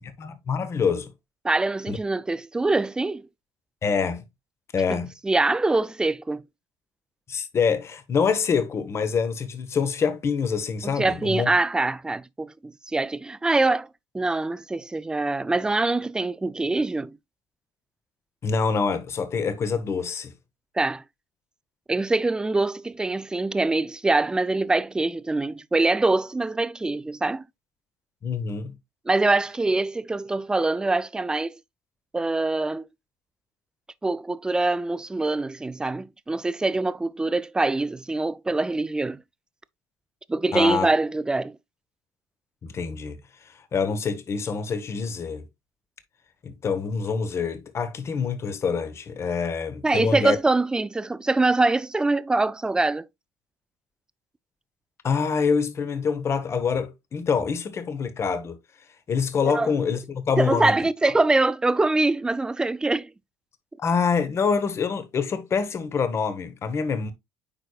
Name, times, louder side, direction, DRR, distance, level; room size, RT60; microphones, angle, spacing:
voice 1, 0.2-1.1 1.9-2.0 3.8-4.2 4.7-5.1 7.3-11.5 18.4-20.3 28.2-28.7 40.5-40.9 42.6-43.2 43.7-45.4 46.4-50.4 55.0-58.6 59.1-60.8 63.8-67.1, left 5 dB, 35° left, 1.1 m, -26 dB
voice 2, 1.4-3.3 4.9-6.4 10.8-13.9 14.1-17.2 20.8-21.0 21.9-27.4 29.1-31.6 32.1-32.9 34.0-39.2 40.3-41.6 49.8-53.1 59.4-59.7 60.4-63.1, right 2 dB, 10° right, 0.3 m, -24 dB
8.8 x 4.8 x 2.3 m
cardioid pair, 120°, 8 cm